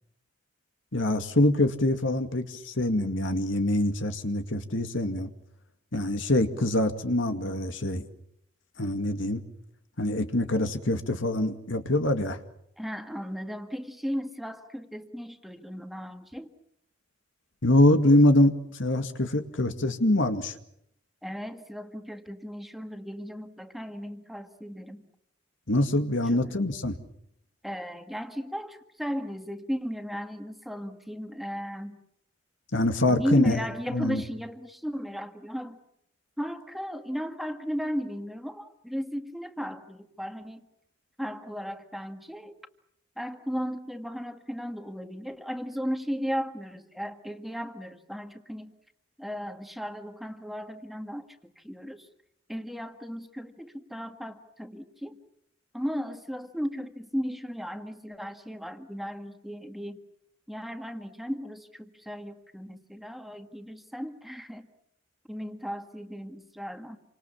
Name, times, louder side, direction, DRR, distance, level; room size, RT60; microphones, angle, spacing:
voice 1, 0.9-5.3 5.9-8.0 8.8-9.4 10.0-12.4 17.6-20.5 25.7-26.9 32.7-33.6 33.9-34.2, left 1 dB, 75° left, 7 dB, 2.2 m, -24 dB
voice 2, 12.8-16.5 21.2-25.0 26.3-26.6 27.6-32.0 33.1-35.8 36.4-40.6 41.2-42.6 43.2-48.7 49.2-52.1 52.5-55.2 55.7-60.0 60.5-64.7 65.3-67.0, equal, ahead, 6 dB, 1.8 m, -35 dB
28.5 x 25.5 x 7.3 m, 0.77 s
head